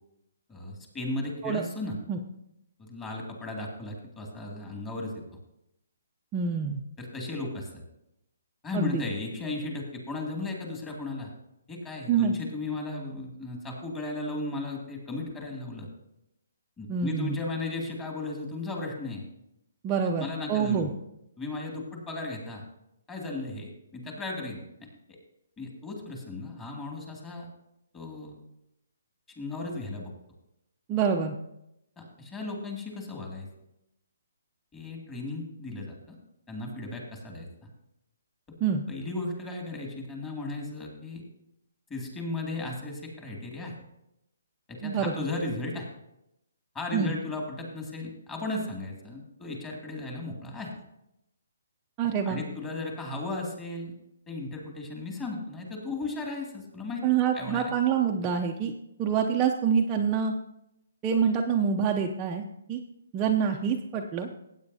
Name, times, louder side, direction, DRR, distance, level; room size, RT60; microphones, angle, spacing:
voice 1, 0.5-2.0 2.8-5.1 7.0-7.8 8.6-11.3 11.7-15.9 16.8-19.3 20.2-20.9 21.4-22.6 23.1-24.6 25.6-27.5 27.9-28.4 29.4-30.1 32.0-33.5 34.7-36.2 36.5-37.7 38.9-41.2 41.9-43.7 44.7-45.9 46.7-50.7 52.3-53.9 54.3-57.1 57.3-57.7, left 2 dB, 15° left, 0 dB, 2.3 m, -35 dB
voice 2, 6.3-6.8 8.7-9.0 12.1-12.3 16.9-17.4 19.8-20.9 30.9-31.3 38.6-38.8 44.8-45.3 46.9-47.1 52.0-52.4 57.0-58.7 59.0-60.3 61.0-62.8 63.1-64.3, right 7 dB, 20° right, 1 dB, 0.6 m, -26 dB
15.5 x 8.7 x 2.7 m, 0.83 s
hypercardioid pair, 155°, 0 cm